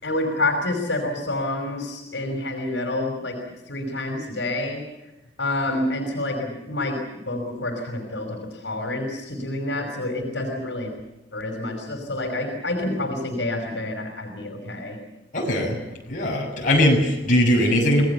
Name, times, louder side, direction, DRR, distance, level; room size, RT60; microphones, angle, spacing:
voice 1, 0.0-3.4 3.7-4.8 5.4-10.9 11.3-15.0, left 2 dB, 75° left, 4 dB, 5.5 m, -28 dB
voice 2, 15.3-15.8 16.1-18.1, left 1 dB, 45° left, 0 dB, 6.8 m, -20 dB
26.5 x 20.0 x 7.0 m, 0.98 s
head